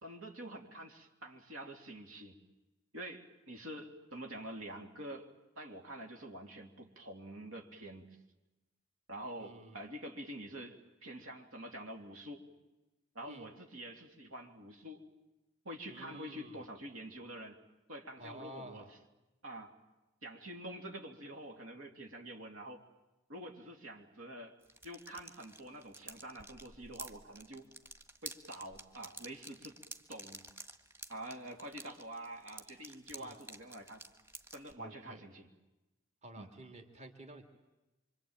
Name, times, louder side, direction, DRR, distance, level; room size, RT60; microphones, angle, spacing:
voice 1, 0.0-2.4 2.9-5.3 5.6-8.1 9.1-12.5 13.2-15.0 15.7-17.6 17.9-19.0 19.4-19.7 20.2-22.8 23.3-24.6 24.8-27.7 28.2-29.8 30.1-30.4 31.1-34.1 34.5-35.5 36.4-36.5, right 1 dB, 90° right, 3 dB, 3.3 m, -47 dB
voice 2, 9.4-9.9 13.3-13.5 15.9-16.6 18.2-18.9 33.2-33.4 34.8-35.2 36.2-37.5, right 1 dB, 35° right, 5 dB, 2.4 m, -51 dB
sound 1, 24.6-34.7, right 1 dB, 10° right, 1.7 m, -51 dB
26.0 x 26.0 x 9.0 m, 1.0 s
head